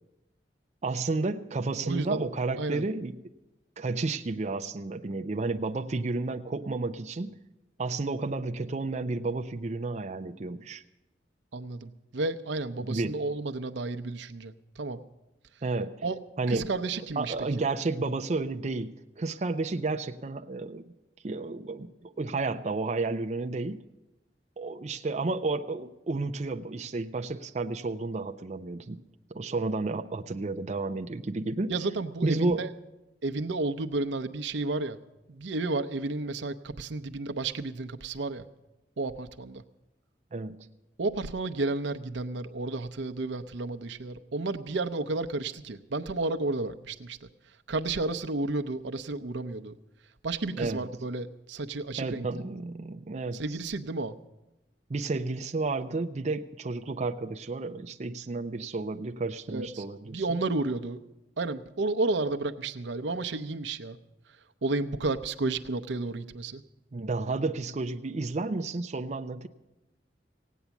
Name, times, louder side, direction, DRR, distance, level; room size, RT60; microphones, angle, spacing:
voice 1, 0.8-3.2 3.8-7.4 7.8-10.8 12.8-13.2 15.6-16.0 16.4-16.7 17.2-20.8 21.2-23.8 24.6-29.0 29.3-31.7 32.2-32.7 40.3-40.7 50.5-50.9 52.0-53.4 54.9-60.2 66.9-69.5, right 3 dB, 40° right, 7 dB, 0.5 m, -31 dB
voice 2, 1.8-2.3 2.6-2.8 11.5-15.0 16.0-16.2 16.5-17.5 31.7-32.7 33.2-35.0 35.3-38.4 39.0-39.6 41.0-47.3 47.7-49.8 50.2-52.3 53.3-54.2 59.5-61.0 61.4-64.0 64.6-66.6, right 2 dB, 90° right, 8 dB, 0.7 m, -32 dB
16.5 x 9.2 x 7.1 m, 0.96 s
head